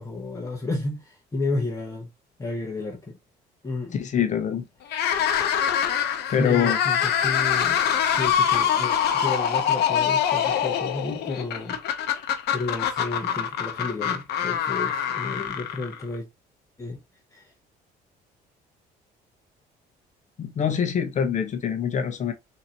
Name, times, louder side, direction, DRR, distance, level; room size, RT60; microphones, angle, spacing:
voice 1, 0.0-2.1 2.4-3.2 3.6-3.9 6.2-7.8 8.1-11.8 12.0-12.2 12.5-16.3 16.8-17.0 17.3-17.5, left 3 dB, 20° left, 1.0 m, -32 dB
voice 2, 3.9-4.6 6.3-6.8 20.4-22.3, left 8 dB, 45° left, 0.8 m, -24 dB
sound 1, 4.9-16.2, left 8 dB, 75° left, 0.9 m, -24 dB
3.9 x 2.8 x 2.9 m
cardioid pair, 110°, 17 cm